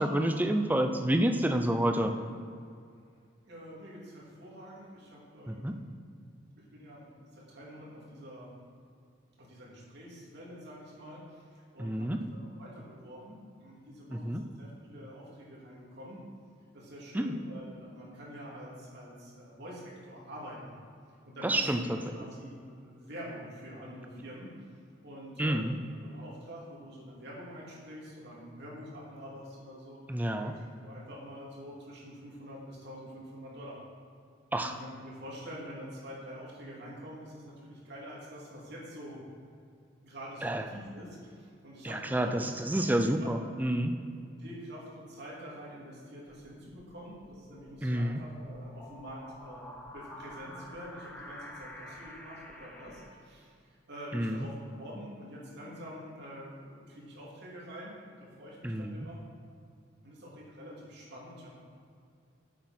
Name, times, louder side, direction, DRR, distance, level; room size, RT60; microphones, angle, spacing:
voice 1, 0.0-2.1 5.5-5.7 11.8-12.2 14.1-14.4 17.1-17.3 21.4-22.2 25.4-25.8 30.1-30.5 34.5-34.8 40.4-40.6 41.8-43.9 47.8-48.2 54.1-54.4 58.6-59.1, right 1 dB, 10° right, 5 dB, 0.5 m, -29 dB
voice 2, 3.4-5.8 6.6-8.5 9.4-16.3 16.7-20.8 21.2-24.5 25.0-25.8 26.0-30.0 30.4-33.8 34.6-39.2 40.0-43.3 44.4-59.2 60.0-61.6, equal, 60° right, -5 dB, 2.7 m, -46 dB
sound 1, 46.3-53.1, left 1 dB, 5° left, 0.9 m, -49 dB
10.5 x 8.0 x 4.3 m, 2.3 s
head